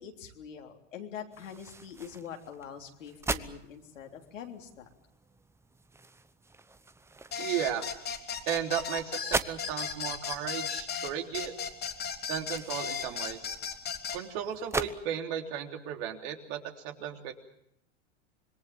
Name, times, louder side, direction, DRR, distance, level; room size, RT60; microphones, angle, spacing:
voice 1, 0.0-4.9, left 8 dB, 90° left, 2 dB, 3.6 m, -44 dB
sound 1, 1.3-14.9, right 3 dB, 5° right, 0.9 m, -41 dB
sound 2, 7.3-14.2, left 7 dB, 25° left, 3.0 m, -36 dB
voice 2, 7.4-7.9 8.5-11.5 12.3-13.4 14.1-17.3, right 9 dB, 55° right, 4 dB, 3.4 m, -35 dB
26.0 x 21.5 x 7.1 m, 0.76 s
hypercardioid pair, 115°, 37 cm